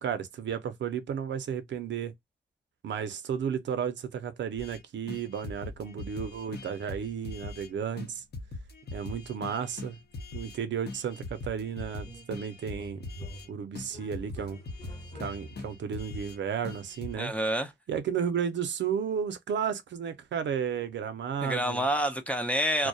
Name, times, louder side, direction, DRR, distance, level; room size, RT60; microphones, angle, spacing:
voice 1, 0.0-2.1 2.8-8.2 8.9-10.0 10.3-13.0 13.5-14.6 15.2-17.3 17.9-21.8 22.8-22.9, right 7 dB, 75° right, 0.5 m, -33 dB
sound 1, 4.6-4.8 5.1-7.7 8.0-8.1 8.3-10.6 10.9-13.5 13.7-16.4 16.6-17.1, left 3 dB, 60° left, 0.7 m, -41 dB
sound 2, 12.0-12.4 12.7-15.8, right 1 dB, 25° left, 0.8 m, -45 dB
voice 2, 17.2-17.7 21.4-22.9, equal, 5° left, 0.4 m, -28 dB
2.3 x 2.1 x 2.6 m
wide cardioid pair, 115°, 19 cm